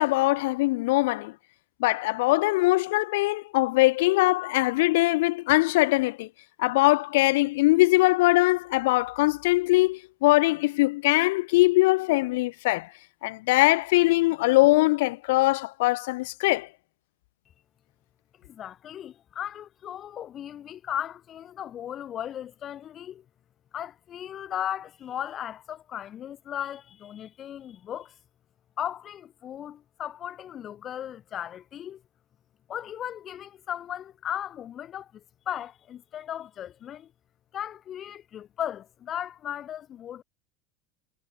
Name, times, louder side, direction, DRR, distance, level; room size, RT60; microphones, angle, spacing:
voice 1, 0.0-1.3 1.8-6.3 6.6-12.9 13.2-16.7, left 21 dB, 75° left, 0.8 m, -22 dB
voice 2, 18.4-23.2 23.7-28.1 28.8-32.0 32.7-37.1 37.5-40.2, left 10 dB, 40° left, 5.5 m, -36 dB
hypercardioid pair, 100°, 0 cm